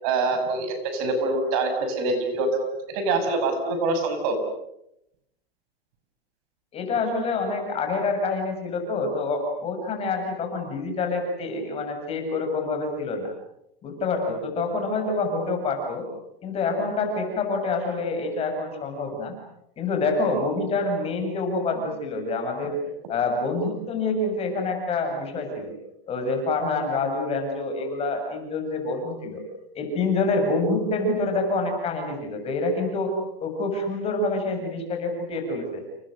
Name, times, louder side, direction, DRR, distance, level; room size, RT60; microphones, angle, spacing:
voice 1, 0.0-2.6 2.9-4.4, right 3 dB, 40° right, 7 dB, 6.6 m, -25 dB
voice 2, 6.7-13.3 13.8-16.1 16.4-19.3 19.8-22.8 23.1-25.8 26.1-29.4 29.8-33.1 33.4-35.8, left 3 dB, 20° left, 4 dB, 7.0 m, -27 dB
30.0 x 29.5 x 6.6 m, 0.80 s
hypercardioid pair, 150°, 30 cm